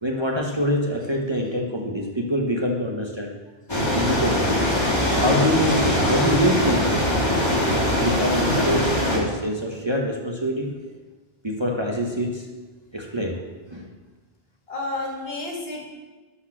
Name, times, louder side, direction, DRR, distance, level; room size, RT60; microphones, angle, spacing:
voice 1, 0.0-3.3 3.9-7.3 8.0-10.8 11.4-12.5 12.9-13.4 13.7-13.9, equal, 30° right, 0 dB, 0.9 m, -25 dB
sound 1, 3.7-9.2, left 1 dB, 25° left, 1.8 m, -22 dB
voice 2, 14.7-16.0, left 2 dB, 70° left, -1 dB, 2.1 m, -32 dB
12.0 x 4.2 x 6.1 m, 1.3 s
omnidirectional pair, 1.1 m